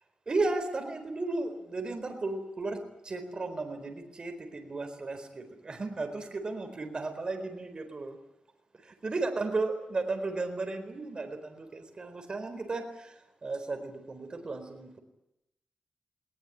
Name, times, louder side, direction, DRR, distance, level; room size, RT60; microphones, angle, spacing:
voice 1, 0.3-2.8 3.0-8.2 8.8-13.1 13.4-15.0, right 3 dB, 40° right, 6 dB, 4.3 m, -34 dB
20.0 x 19.0 x 9.9 m, 0.88 s
wide cardioid pair, 100°, 2 cm